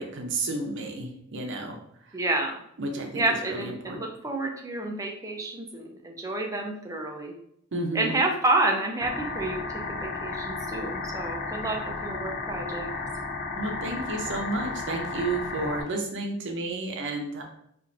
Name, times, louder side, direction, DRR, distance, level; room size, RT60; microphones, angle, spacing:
voice 1, 0.0-1.8 2.8-4.0 7.7-8.1 13.6-17.4, right 2 dB, 60° right, 2 dB, 0.7 m, -31 dB
voice 2, 2.1-2.6 3.1-7.3 7.9-12.9, right 2 dB, 15° right, 2 dB, 0.5 m, -29 dB
sound 1, 9.0-15.8, left 3 dB, 40° left, 0.4 m, -33 dB
4.3 x 2.5 x 2.6 m, 0.73 s
head